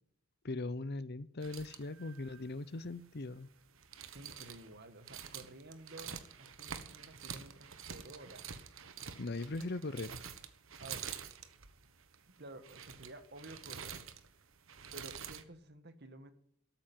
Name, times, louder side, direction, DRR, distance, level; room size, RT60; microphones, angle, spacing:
voice 1, 0.4-3.5 9.2-10.2, left 2 dB, 45° left, 17 dB, 0.7 m, -40 dB
sound 1, 1.4-15.4, right 7 dB, 60° right, 1.3 m, -48 dB
voice 2, 4.1-8.5 10.8-11.1 12.4-14.1 14.9-16.3, right 1 dB, 45° right, 10 dB, 1.7 m, -52 dB
13.5 x 9.0 x 9.4 m, 0.66 s
head